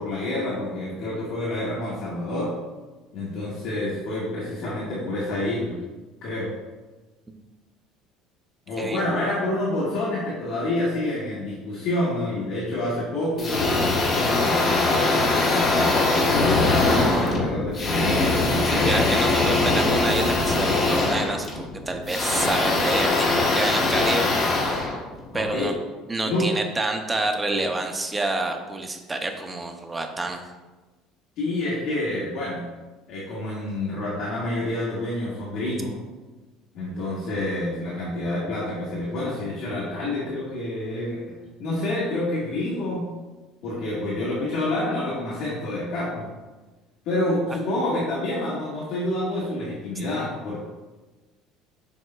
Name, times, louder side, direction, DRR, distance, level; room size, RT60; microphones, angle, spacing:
voice 1, 0.0-2.6 3.1-5.8 6.2-6.5 8.7-14.6 15.3-18.1 25.3-25.7 26.2-26.5 31.4-32.6 33.1-36.0 36.7-41.2 41.6-43.1 43.6-46.3 47.0-50.6, left 1 dB, 50° left, -7 dB, 1.4 m, -28 dB
sound 1, 13.4-25.6, left 2 dB, 25° left, 0.9 m, -22 dB
voice 2, 18.6-24.3 25.3-25.7 26.1-30.4, right 2 dB, 10° right, 4 dB, 0.5 m, -28 dB
7.7 x 5.4 x 2.2 m, 1.2 s
cardioid pair, 170°, 0 cm